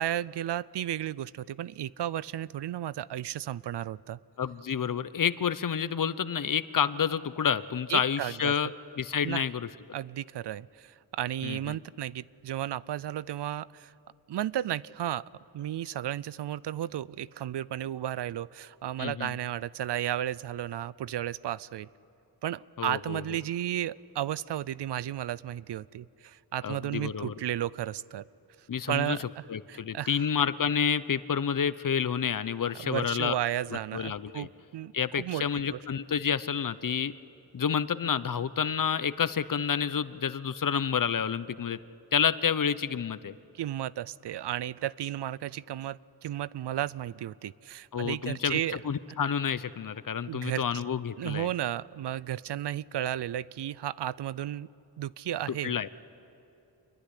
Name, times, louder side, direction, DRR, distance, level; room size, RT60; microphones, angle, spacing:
voice 1, 0.0-4.2 7.9-8.5 9.2-9.4 9.9-13.9 14.3-15.2 15.5-21.9 22.4-28.3 28.9-30.3 32.8-35.8 43.5-48.8 50.3-50.8 51.2-54.7 55.0-55.7, right 12 dB, 85° right, 21 dB, 0.5 m, -33 dB
voice 2, 4.4-9.7 11.4-11.8 19.0-19.3 22.8-23.2 26.6-27.3 28.7-29.2 29.5-33.3 33.9-34.5 34.9-37.1 37.5-41.8 42.1-43.3 47.9-48.6 48.8-51.5 55.6-55.9, left 7 dB, 55° left, 15 dB, 0.8 m, -29 dB
26.5 x 22.0 x 9.9 m, 2.8 s
wide cardioid pair, 90°, 40 cm